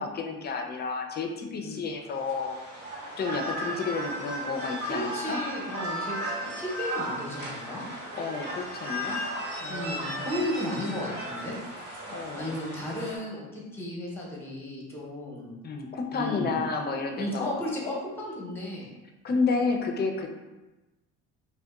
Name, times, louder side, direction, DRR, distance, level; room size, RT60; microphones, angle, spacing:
voice 1, 0.0-2.6 3.2-5.4 8.1-9.2 9.6-9.9 12.1-12.5 15.6-17.6 19.2-20.3, left 4 dB, 30° left, 3 dB, 0.4 m, -31 dB
sound 1, 2.0-13.2, equal, 65° right, 1.2 m, -35 dB
voice 2, 4.9-7.8 9.7-11.6 12.3-15.5 16.1-16.6 17.1-18.9, left 1 dB, 5° left, -4 dB, 0.8 m, -34 dB
2.7 x 2.1 x 2.3 m, 1.1 s
supercardioid pair, 75°, 32 cm